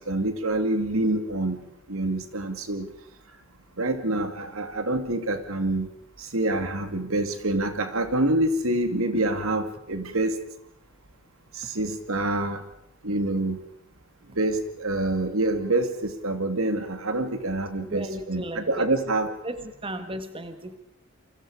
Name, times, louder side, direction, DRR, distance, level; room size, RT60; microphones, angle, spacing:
voice 1, 0.1-1.6 1.9-2.9 3.8-5.9 6.2-10.4 11.5-12.6 13.0-13.6 14.4-19.3, right 2 dB, 90° right, 8 dB, 2.5 m, -26 dB
voice 2, 17.8-18.9 19.4-20.8, right 1 dB, 25° right, 9 dB, 1.9 m, -35 dB
29.0 x 24.5 x 5.0 m, 0.74 s
head